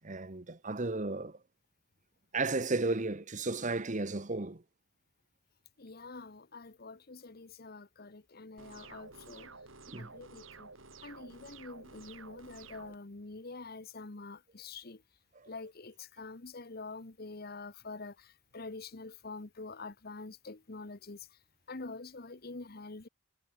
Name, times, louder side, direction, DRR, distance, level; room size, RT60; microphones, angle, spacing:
voice 1, 0.0-1.4 2.3-4.6 9.9-10.1 15.3-15.5, right 3 dB, 40° right, 1.2 m, -34 dB
voice 2, 5.8-9.5 10.0-10.7 11.0-15.0 15.5-21.4 21.7-23.1, left 3 dB, 50° left, 1.1 m, -46 dB
sound 1, 8.6-13.0, right 4 dB, 80° right, 7.8 m, -52 dB
head